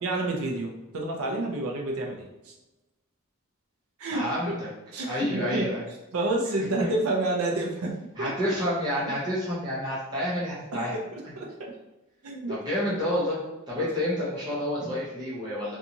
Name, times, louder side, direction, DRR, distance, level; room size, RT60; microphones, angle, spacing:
voice 1, 0.0-2.5 4.0-4.6 4.9-5.7 6.1-7.9 8.2-8.3 9.0-9.2 10.7-11.8 12.2-12.8 13.8-13.9 14.8-14.9, right 2 dB, 70° right, 0 dB, 0.5 m, -30 dB
voice 2, 4.1-4.7 5.1-5.8 6.8-6.9 8.2-11.0 12.5-13.4 13.7-15.8, left 1 dB, 20° right, -8 dB, 0.8 m, -29 dB
2.6 x 2.4 x 2.8 m, 1.0 s
head